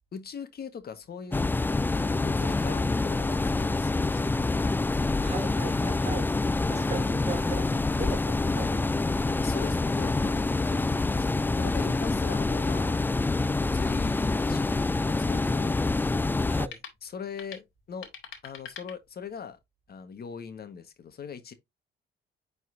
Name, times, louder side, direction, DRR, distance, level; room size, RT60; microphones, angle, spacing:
voice 1, 0.1-1.4 2.0-4.4 9.4-13.0 13.4-15.9 17.0-18.1 18.4-19.6 19.9-21.5, left 6 dB, 50° left, 1.4 m, -41 dB
sound 1, 1.3-16.7, left 3 dB, 10° left, 0.3 m, -26 dB
voice 2, 5.2-6.3 6.7-9.3 16.5-16.8, right 5 dB, 30° right, 2.8 m, -39 dB
sound 2, 16.6-19.6, left 8 dB, 90° left, 2.1 m, -48 dB
9.5 x 4.2 x 2.6 m
cardioid pair, 90°, 20 cm